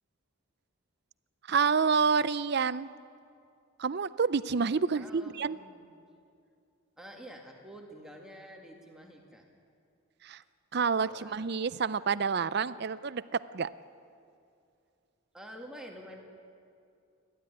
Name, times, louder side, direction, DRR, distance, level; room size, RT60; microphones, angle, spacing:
voice 1, 1.5-2.9 3.8-5.6 10.2-10.4 10.7-13.7, right 5 dB, 50° right, 16 dB, 0.5 m, -28 dB
voice 2, 4.9-5.9 7.0-9.5 11.1-11.5 15.3-16.2, equal, 5° right, 1 dB, 2.1 m, -48 dB
29.0 x 12.5 x 9.8 m, 2.5 s
head